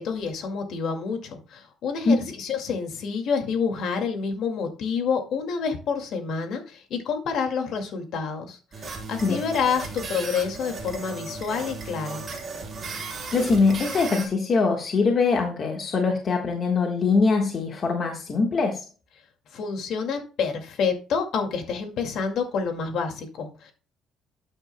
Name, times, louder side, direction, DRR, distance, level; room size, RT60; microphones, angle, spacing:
voice 1, 0.0-12.2 19.5-23.7, left 5 dB, 55° left, 5 dB, 2.1 m, -28 dB
sound 1, 8.7-14.3, right 4 dB, 25° right, 3.5 m, -36 dB
voice 2, 13.3-18.8, left 4 dB, 30° left, 2 dB, 1.4 m, -22 dB
13.0 x 8.8 x 2.2 m, 0.35 s
cardioid pair, 175°, 0 cm